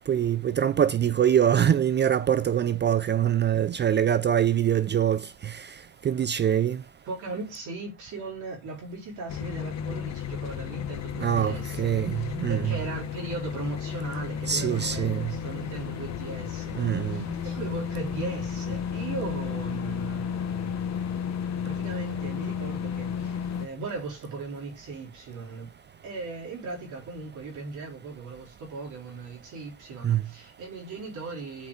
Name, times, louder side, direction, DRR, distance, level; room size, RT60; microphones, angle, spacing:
voice 1, 0.1-5.7 6.0-6.8 11.2-12.8 14.5-15.3 16.7-17.3 30.0-30.2, right 9 dB, 35° right, 0.4 m, -24 dB
voice 2, 7.1-20.7 21.6-25.7 26.0-31.7, right 3 dB, 80° right, 4.3 m, -38 dB
sound 1, 9.3-23.7, left 7 dB, 60° left, 1.0 m, -33 dB
7.3 x 4.6 x 5.1 m
cardioid pair, 90°, 30 cm